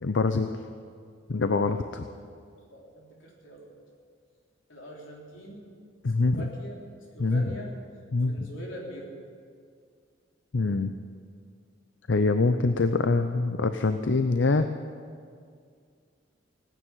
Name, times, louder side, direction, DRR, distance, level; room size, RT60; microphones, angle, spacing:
voice 1, 0.0-0.5 1.3-2.0 6.0-6.5 7.2-7.4 8.1-8.4 10.5-10.9 12.1-14.7, left 3 dB, 65° left, 9 dB, 0.6 m, -24 dB
voice 2, 1.6-1.9 2.7-3.7 4.7-5.7 6.2-6.8 7.1-7.8 8.3-9.1, equal, 85° left, -2 dB, 3.7 m, -43 dB
17.5 x 9.2 x 9.0 m, 2.2 s
head